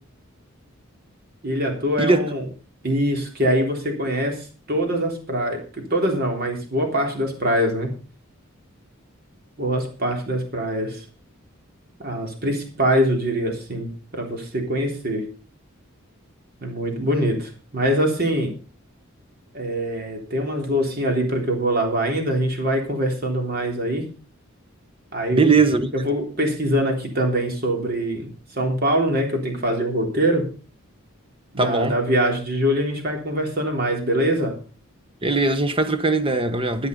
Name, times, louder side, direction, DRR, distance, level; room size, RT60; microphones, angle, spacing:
voice 1, 1.4-2.4 2.8-7.9 9.6-11.0 12.0-15.3 16.6-18.5 19.5-24.1 25.1-30.5 31.5-34.6, equal, 45° right, 3.6 m, -23 dB
voice 2, 25.3-25.9 31.6-32.0 35.2-36.9, right 3 dB, 25° right, 1.1 m, -20 dB
13.0 x 9.7 x 5.3 m
head